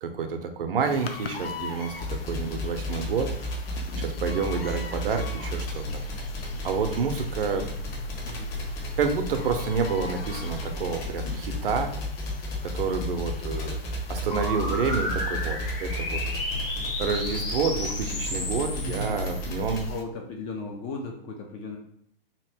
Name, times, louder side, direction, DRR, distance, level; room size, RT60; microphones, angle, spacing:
voice 1, 0.0-3.5 4.0-6.0 6.6-7.6 9.0-11.9 12.6-16.2 17.0-19.9, right 5 dB, 70° right, 6 dB, 0.6 m, -29 dB
sound 1, 0.8-20.0, left 5 dB, 85° left, 0.5 m, -43 dB
sound 2, 2.0-19.9, left 1 dB, 40° left, 1.0 m, -33 dB
sound 3, 14.3-19.8, left 2 dB, 65° left, 1.2 m, -33 dB
voice 2, 18.7-19.3 19.9-21.8, left 2 dB, 20° left, 2 dB, 0.3 m, -36 dB
2.9 x 2.6 x 3.3 m, 0.70 s
hypercardioid pair, 115°, 29 cm